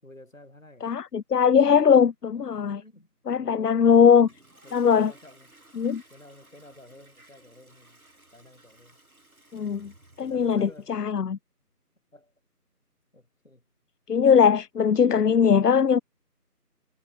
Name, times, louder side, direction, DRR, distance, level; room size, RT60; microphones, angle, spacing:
voice 1, 0.0-0.9 2.3-2.4 2.8-4.3 4.6-5.5 6.1-8.0 8.3-9.0 10.2-11.0 12.1-12.3 13.1-13.6, left 1 dB, 55° left, 6.2 m, -52 dB
voice 2, 0.8-2.8 3.3-4.3 4.7-5.1 5.8-6.0 9.5-9.9 10.2-11.4 14.1-16.0, left 7 dB, 75° left, 0.6 m, -20 dB
Toilet flush, 4.1-11.0, right 1 dB, 60° right, 3.6 m, -56 dB
figure-of-eight pair, 175°, 48 cm